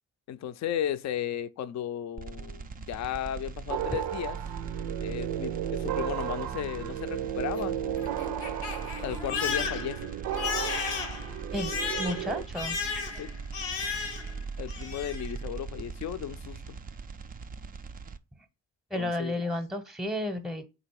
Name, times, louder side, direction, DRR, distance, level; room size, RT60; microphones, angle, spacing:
voice 1, 0.3-4.4 5.0-7.8 8.8-10.1 13.2-13.3 14.6-16.8 18.9-19.4, left 10 dB, 40° left, 0.4 m, -35 dB
sound 1, 2.2-18.2, right 5 dB, 20° right, 0.3 m, -41 dB
sound 2, 3.7-12.4, right 11 dB, 70° right, 0.6 m, -34 dB
Crying sobbing, 7.4-14.4 14.7-15.3, left 5 dB, 85° left, 0.8 m, -35 dB
voice 2, 11.5-12.8 18.4-18.5 18.9-20.6, left 1 dB, ahead, 0.8 m, -32 dB
3.8 x 2.7 x 4.6 m
hypercardioid pair, 40°, 45 cm